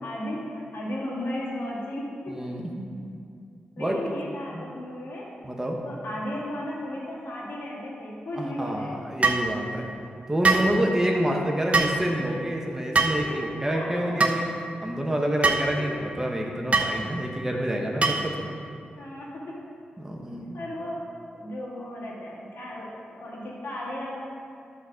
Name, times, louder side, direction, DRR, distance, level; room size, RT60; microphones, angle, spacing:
voice 1, 0.0-2.5 3.8-5.3 5.8-9.0 13.1-14.2 15.8-16.0 18.0-18.1 19.0-19.6 20.5-21.0 21.3-22.9 23.2-24.2, left 1 dB, 80° left, -4 dB, 2.1 m, -35 dB
voice 2, 2.3-2.9 3.8-4.0 4.5-4.6 5.4-5.8 8.3-9.9 10.3-14.5 14.8-18.5 20.0-20.6, right 1 dB, 15° right, 0 dB, 1.2 m, -28 dB
sound 1, 9.2-9.5 10.4-10.7 11.7-12.0 12.9-13.2 14.2-14.4 15.4-15.7 16.7-16.9 18.0-18.3, right 3 dB, 40° right, 0.9 m, -22 dB
11.0 x 4.2 x 6.3 m, 2.4 s
cardioid pair, 70°, 4 cm